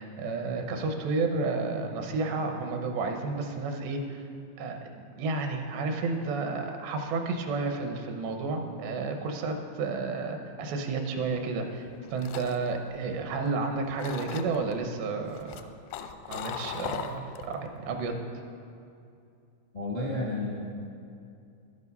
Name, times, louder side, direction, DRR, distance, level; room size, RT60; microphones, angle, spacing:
voice 1, 0.0-4.2 4.6-15.6 16.3-18.1, right 3 dB, 75° right, 4 dB, 3.0 m, -31 dB
sound 1, 11.8-13.6 14.0-14.7 15.3-17.5 17.9-18.2, left 9 dB, 85° left, 2.4 m, -39 dB
voice 2, 19.7-20.6, left 2 dB, 70° left, -5 dB, 0.4 m, -31 dB
11.5 x 11.0 x 5.3 m, 2.5 s
omnidirectional pair, 5.2 m